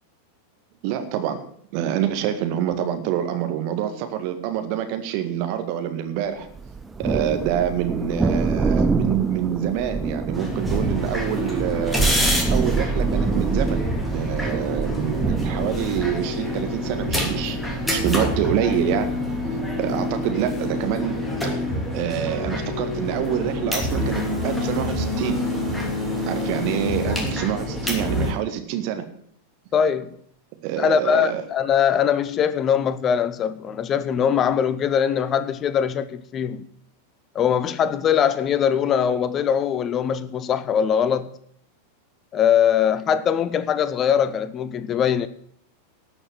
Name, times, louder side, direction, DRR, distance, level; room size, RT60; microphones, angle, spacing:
voice 1, 0.8-1.4 1.7-6.5 7.0-12.0 12.5-19.1 19.8-21.1 21.4-21.6 21.9-25.4 26.3-29.1 30.6-31.4, right 10 dB, 45° right, 1.9 m, -26 dB
Thunder, 6.5-19.7, right 4 dB, 10° right, 0.7 m, -27 dB
sound 1, 10.3-28.3, left 1 dB, 5° left, 2.9 m, -26 dB
voice 2, 29.7-30.2 30.8-36.7 37.3-41.3 42.3-45.3, left 8 dB, 30° left, 0.7 m, -21 dB
12.5 x 6.4 x 9.3 m
figure-of-eight pair, 90°, 0 cm